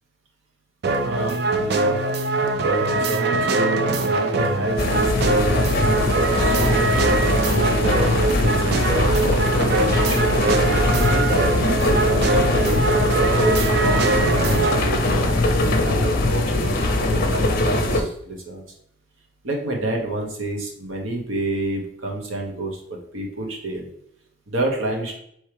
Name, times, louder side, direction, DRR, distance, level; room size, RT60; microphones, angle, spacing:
sound 1, 0.8-14.9, right 3 dB, 55° right, 0.4 m, -22 dB
voice 1, 0.9-2.0 2.6-5.6 6.3-10.4 11.1-12.8 13.2-18.7 19.4-23.9 24.5-25.2, right 2 dB, 90° right, 1 dB, 1.1 m, -29 dB
sound 2, 4.8-18.0, left 2 dB, 50° left, 0.6 m, -21 dB
4.5 x 3.2 x 3.3 m, 0.72 s
head